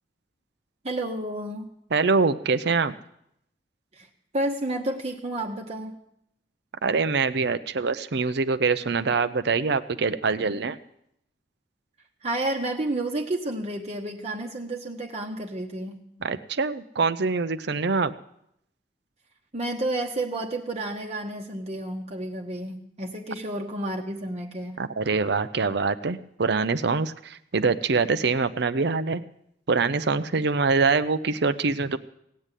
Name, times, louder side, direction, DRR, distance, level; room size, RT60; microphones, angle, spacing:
voice 1, 0.8-1.7 3.9-4.1 4.3-6.0 12.2-16.0 19.5-24.8, right 1 dB, 35° right, 2 dB, 1.2 m, -31 dB
voice 2, 1.9-2.9 6.8-10.8 16.2-18.1 24.8-29.2 29.7-32.0, right 4 dB, 65° right, 12 dB, 0.7 m, -24 dB
17.0 x 8.4 x 9.0 m, 0.76 s
head